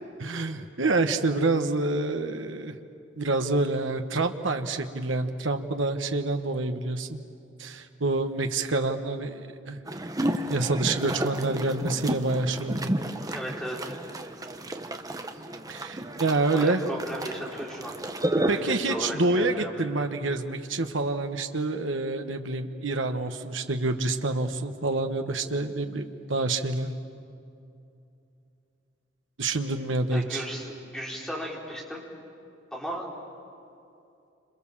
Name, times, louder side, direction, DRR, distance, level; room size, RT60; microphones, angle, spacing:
voice 1, 0.2-2.7 3.2-7.2 7.6-9.8 10.5-12.9 15.7-16.8 18.5-26.9 29.4-30.5, right 2 dB, 75° right, 6 dB, 1.4 m, -27 dB
sound 1, 9.9-18.8, right 1 dB, 20° right, 1.1 m, -32 dB
voice 2, 13.3-13.9 16.5-17.9 18.4-20.1 30.1-32.0 32.7-33.1, equal, 5° left, -3 dB, 4.5 m, -36 dB
30.0 x 27.0 x 7.4 m, 2.7 s
head